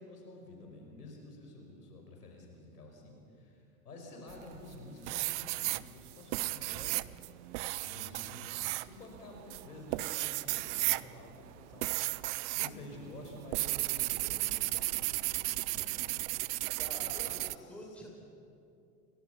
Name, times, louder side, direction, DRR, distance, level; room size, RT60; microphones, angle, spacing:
voice 1, 0.0-7.2 7.8-11.9 12.5-16.2 17.1-18.0, left 1 dB, 75° left, 1 dB, 5.6 m, -50 dB
sound 1, 4.3-4.8 5.1-12.8 13.0-17.6, right 21 dB, 50° right, 0.7 m, -34 dB
voice 2, 16.8-17.4 17.7-18.1, equal, 5° left, -2 dB, 6.9 m, -47 dB
29.0 x 23.5 x 5.8 m, 2.6 s
figure-of-eight pair, 85°, 46 cm